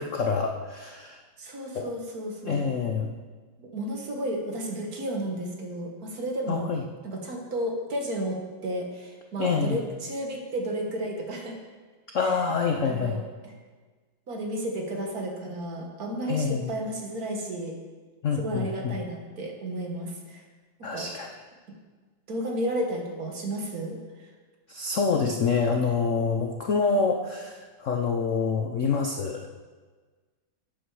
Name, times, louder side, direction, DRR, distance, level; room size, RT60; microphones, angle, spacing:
voice 1, 0.0-1.2 1.7-1.9 2.4-3.1 6.5-6.8 9.4-9.8 12.1-13.2 16.3-16.7 18.2-19.0 20.8-21.3 24.7-29.5, left 5 dB, 60° left, 3 dB, 0.8 m, -26 dB
voice 2, 1.4-2.6 3.6-6.7 7.0-11.6 12.2-12.4 12.8-13.5 14.3-17.8 18.4-20.4 20.9-21.1 22.3-24.3, right 1 dB, 50° right, 2 dB, 1.7 m, -32 dB
11.5 x 8.7 x 4.8 m, 1.4 s
omnidirectional pair, 2.2 m